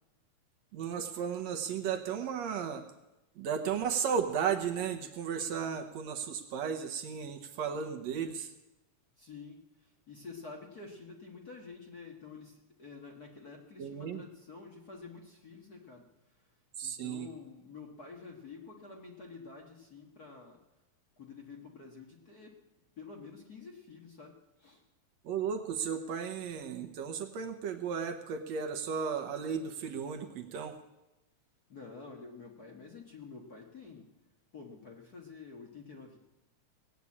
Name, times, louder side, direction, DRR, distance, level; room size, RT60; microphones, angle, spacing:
voice 1, 0.7-2.8 3.4-8.5 13.8-14.2 16.8-17.3 25.2-30.8, right 7 dB, 70° right, 6 dB, 2.1 m, -34 dB
voice 2, 9.2-16.1 16.8-20.6 21.2-22.6 23.0-24.8 31.7-34.1 34.5-36.2, left 4 dB, 40° left, 0 dB, 1.5 m, -49 dB
18.5 x 8.3 x 8.5 m, 0.98 s
omnidirectional pair, 3.4 m